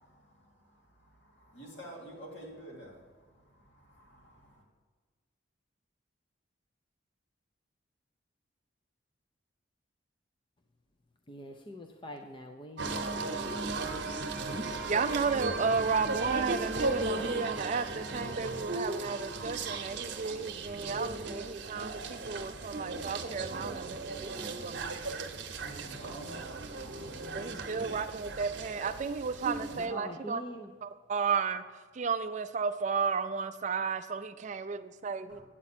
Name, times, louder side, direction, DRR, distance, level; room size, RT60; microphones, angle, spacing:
voice 1, 0.0-4.6 25.8-28.5 35.3-35.4, right 1 dB, 70° left, -2 dB, 2.6 m, -51 dB
voice 2, 11.3-13.8 25.6-26.5 26.9-27.6 29.7-30.7, equal, 25° left, 4 dB, 0.5 m, -46 dB
sound 1, 12.8-29.9, right 3 dB, 60° right, 0.9 m, -36 dB
voice 3, 14.8-25.3 27.3-30.4 30.8-31.6 31.9-35.4, right 5 dB, 40° right, 11 dB, 0.4 m, -33 dB
8.8 x 8.3 x 4.3 m, 1.5 s
head